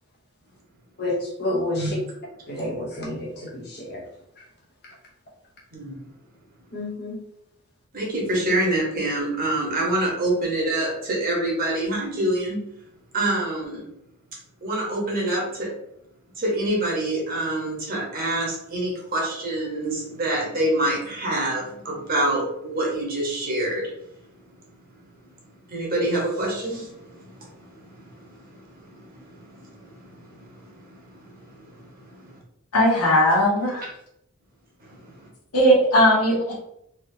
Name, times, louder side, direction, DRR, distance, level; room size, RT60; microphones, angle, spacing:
voice 1, 1.0-2.0 2.5-4.0 6.7-7.2, left 1 dB, 45° left, -2 dB, 0.7 m, -29 dB
voice 2, 7.9-12.6 13.1-13.8 14.6-15.7 16.4-23.9 25.7-26.9 27.2-27.5 29.7-29.8, right 1 dB, 40° right, -2 dB, 0.9 m, -25 dB
voice 3, 32.7-33.9 35.5-36.6, equal, 85° left, -4 dB, 1.2 m, -18 dB
3.4 x 2.7 x 2.6 m, 0.77 s
head